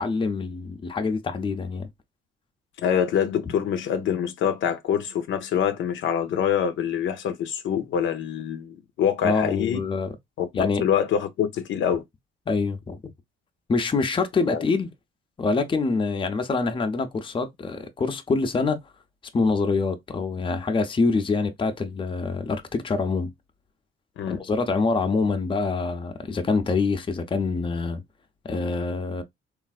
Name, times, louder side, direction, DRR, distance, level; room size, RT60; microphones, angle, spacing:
voice 1, 0.0-1.9 9.2-10.2 10.5-10.8 12.5-13.0 13.7-14.9 15.4-18.8 19.3-23.3 24.3-28.0 28.4-29.2, left 4 dB, 25° left, 0.6 m, -25 dB
voice 2, 2.8-9.8 10.4-12.0 14.5-14.6 24.2-24.4, left 8 dB, 70° left, 0.6 m, -25 dB
3.3 x 2.5 x 2.3 m
cardioid pair, 90°, 20 cm